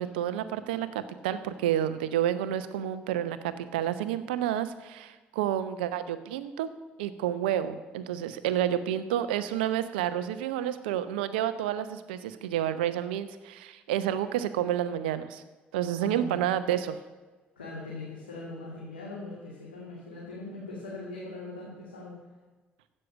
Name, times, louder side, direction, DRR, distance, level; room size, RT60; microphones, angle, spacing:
voice 1, 0.0-6.7 7.0-15.4 15.7-16.9, right 11 dB, 75° right, 13 dB, 0.8 m, -30 dB
voice 2, 15.9-16.4 17.6-22.1, left 2 dB, 90° left, -6 dB, 2.5 m, -41 dB
15.5 x 6.7 x 8.5 m, 1.3 s
figure-of-eight pair, 50°, 5 cm